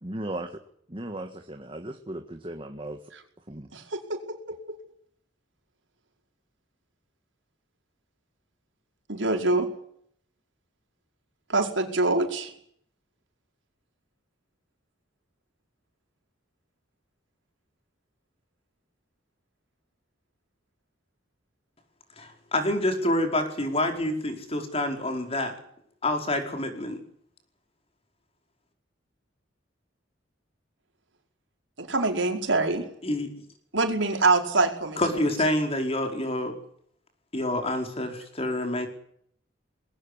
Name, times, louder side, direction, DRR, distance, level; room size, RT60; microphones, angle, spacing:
voice 1, 0.0-0.5 0.9-3.0 3.5-3.7, right 1 dB, 30° right, 6 dB, 1.7 m, -36 dB
voice 2, 3.7-4.8 9.1-9.7 11.5-12.5 31.8-32.8 33.7-35.0, right 3 dB, 85° right, 4 dB, 5.1 m, -25 dB
voice 3, 22.2-25.5 26.0-27.0 33.0-33.3 35.0-36.5 37.3-38.9, left 1 dB, 30° left, 5 dB, 4.7 m, -27 dB
21.0 x 18.0 x 10.0 m, 0.67 s
head